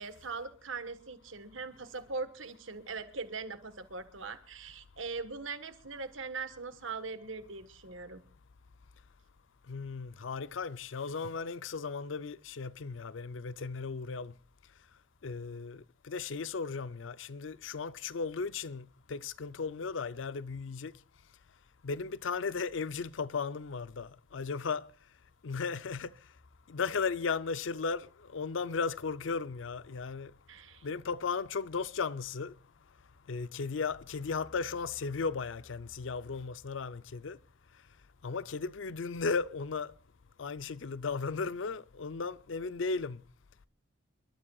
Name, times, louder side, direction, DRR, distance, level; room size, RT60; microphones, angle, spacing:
voice 1, 0.0-8.2 30.5-30.9, right 4 dB, 85° right, 1.4 m, -41 dB
voice 2, 9.7-14.3 15.2-20.9 21.8-24.9 25.4-26.1 26.7-30.3 30.8-32.5 33.3-37.4 38.2-39.9 40.4-43.2, left 4 dB, 75° left, 0.6 m, -36 dB
28.5 x 12.5 x 2.4 m
head